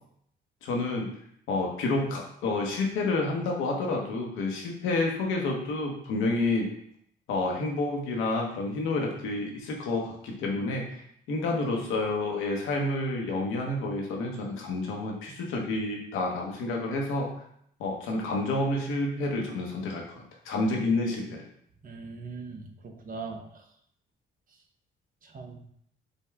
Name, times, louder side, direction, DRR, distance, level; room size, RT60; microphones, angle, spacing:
voice 1, 0.6-1.1 1.5-6.7 7.3-10.8 11.3-17.3 17.8-21.4, left 2 dB, 90° left, 0 dB, 0.9 m, -29 dB
voice 2, 21.8-23.6 25.2-25.6, right 4 dB, 45° right, 3 dB, 0.7 m, -40 dB
5.2 x 2.1 x 3.4 m, 0.69 s
cardioid pair, 90°, 20 cm